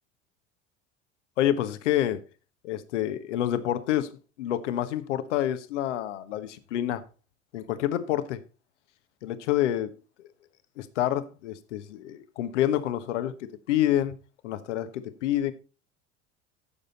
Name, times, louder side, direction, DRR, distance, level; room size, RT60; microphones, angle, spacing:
voice 1, 1.4-2.2 2.6-4.1 4.4-7.0 7.5-8.4 9.2-9.9 10.8-14.2 14.4-15.5, left 12 dB, 65° left, 1.3 m, -28 dB
15.5 x 6.7 x 4.1 m
figure-of-eight pair, 70°, 38 cm